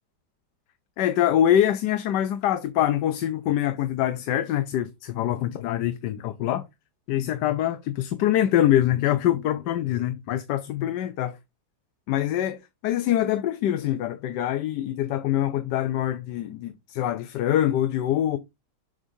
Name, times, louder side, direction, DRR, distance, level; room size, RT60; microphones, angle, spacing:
voice 1, 1.0-6.6 7.1-11.4 12.1-12.6 12.8-18.4, left 11 dB, 85° left, 1.2 m, -24 dB
7.3 x 5.0 x 2.7 m
omnidirectional pair, 1.8 m